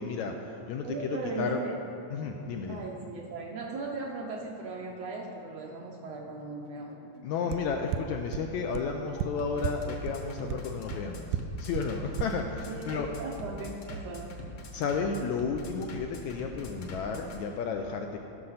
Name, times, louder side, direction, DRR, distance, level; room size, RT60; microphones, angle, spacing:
voice 1, 0.0-1.6 2.1-2.8 7.2-13.1 14.7-18.2, left 5 dB, 80° left, 3 dB, 1.7 m, -33 dB
voice 2, 0.8-1.8 2.7-7.2 12.7-14.3, right 3 dB, 70° right, 0 dB, 1.6 m, -38 dB
Bass drum, 1.4-17.4, equal, 60° left, 2.0 m, -44 dB
sound 1, 7.5-7.6 7.9-8.0 8.3-8.4 8.7-8.8 9.2-9.3 9.6-9.7 10.1-10.2 10.5-10.6 10.9-11.0 11.3-11.4 11.7-11.8 12.2-12.3, right 11 dB, 90° right, 2.2 m, -29 dB
14.5 x 6.4 x 5.7 m, 2.9 s
omnidirectional pair, 3.8 m